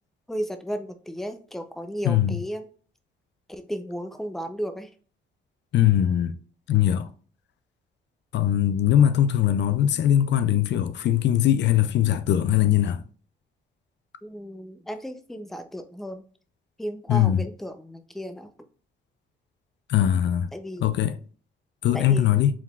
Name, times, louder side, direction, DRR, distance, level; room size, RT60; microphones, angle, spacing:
voice 1, 0.3-2.7 3.5-4.9 14.2-16.2 16.8-18.5 20.5-20.9 21.9-22.3, equal, ahead, 0.5 m, -34 dB
voice 2, 5.7-6.4 6.7-7.1 8.3-13.0 17.1-17.5 19.9-20.5 20.8-21.1 21.8-22.5, left 11 dB, 65° left, 0.4 m, -21 dB
4.7 x 3.5 x 2.3 m
cardioid pair, 90°, 20 cm